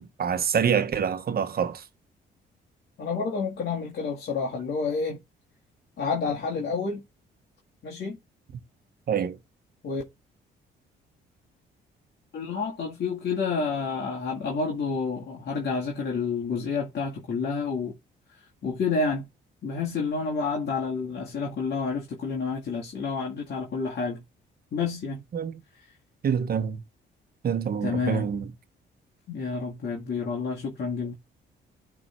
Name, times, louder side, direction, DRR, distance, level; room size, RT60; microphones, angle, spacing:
voice 1, 0.0-1.9 9.1-9.4 25.3-25.6 26.2-26.8 27.4-28.5, right 7 dB, 50° right, 1.2 m, -26 dB
voice 2, 3.0-5.2 6.0-7.0 7.8-8.2 9.8-10.0 12.3-17.9 18.6-19.3 19.6-24.2 24.7-25.2 27.8-28.3 29.3-31.1, left 4 dB, 55° left, 2.1 m, -29 dB
11.0 x 3.7 x 4.4 m
cardioid pair, 90°, 20 cm